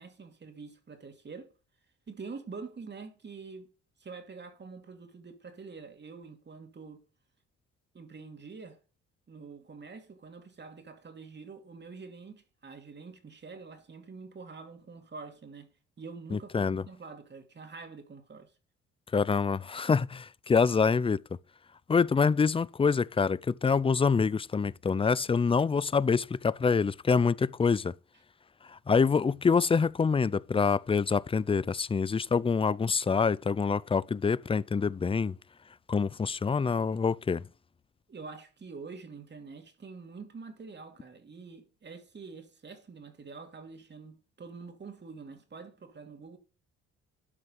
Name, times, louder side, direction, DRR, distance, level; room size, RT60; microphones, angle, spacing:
voice 1, 0.0-1.5 2.1-3.7 4.0-7.0 7.9-8.8 9.3-15.7 16.0-18.5 38.1-46.4, right 4 dB, 35° right, 2.7 m, -46 dB
voice 2, 16.3-16.8 19.1-21.2 21.9-27.9 28.7-35.4 35.9-37.4, left 5 dB, 20° left, 0.4 m, -26 dB
12.0 x 5.5 x 5.5 m
cardioid pair, 90°, 30 cm